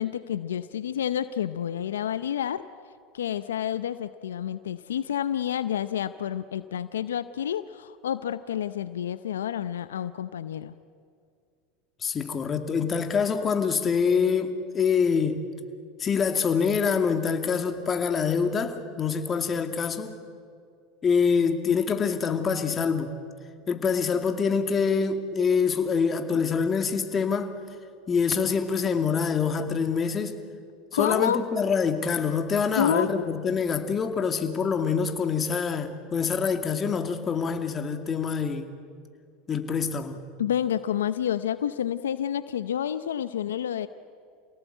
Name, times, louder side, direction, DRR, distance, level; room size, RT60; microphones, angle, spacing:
voice 1, 0.0-2.6 3.1-10.8 30.9-31.4 32.7-33.3 40.4-43.9, left 9 dB, 85° left, 0.7 m, -29 dB
voice 2, 12.0-15.4 16.0-20.2 21.0-23.1 23.7-27.5 28.1-30.4 30.9-38.7 39.5-40.2, left 6 dB, 30° left, 2.4 m, -25 dB
28.0 x 17.5 x 9.2 m
hypercardioid pair, 90°, 0 cm